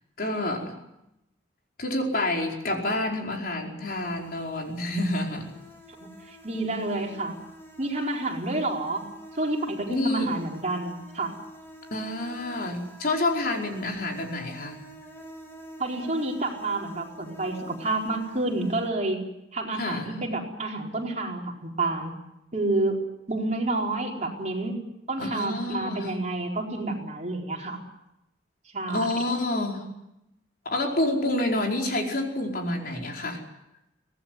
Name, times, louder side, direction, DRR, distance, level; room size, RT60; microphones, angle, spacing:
voice 1, 0.2-0.8 1.8-5.5 9.9-10.3 11.9-14.9 19.8-20.2 25.2-26.2 28.9-29.9 30.6-33.4, left 1 dB, 55° left, 1 dB, 4.9 m, -28 dB
sound 1, 3.9-18.9, right 1 dB, 15° left, 4.7 m, -47 dB
voice 2, 6.0-7.4 7.8-9.0 9.3-11.3 15.8-19.2 19.5-22.1 22.5-23.0 23.3-24.8 25.1-27.8 28.7-29.1, right 2 dB, 40° right, 0 dB, 4.6 m, -29 dB
24.5 x 18.5 x 9.5 m, 0.88 s
head